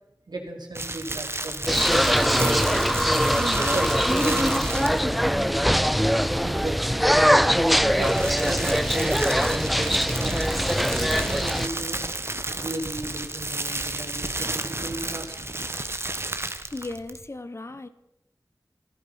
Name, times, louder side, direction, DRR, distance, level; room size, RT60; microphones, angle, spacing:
voice 1, 0.3-2.6 3.4-5.9 6.4-7.1 7.4-9.8 10.1-10.5 11.0-12.1 12.6-15.5, right 2 dB, 85° right, 1 dB, 3.3 m, -35 dB
sound 1, 0.7-5.2 7.7-17.3, right 2 dB, 35° right, 1.1 m, -32 dB
sound 2, 1.7-11.7, equal, ahead, 0.5 m, -22 dB
voice 2, 16.7-17.9, left 2 dB, 40° left, 12 dB, 1.0 m, -36 dB
14.5 x 14.5 x 5.7 m, 0.90 s
wide cardioid pair, 65°, 7 cm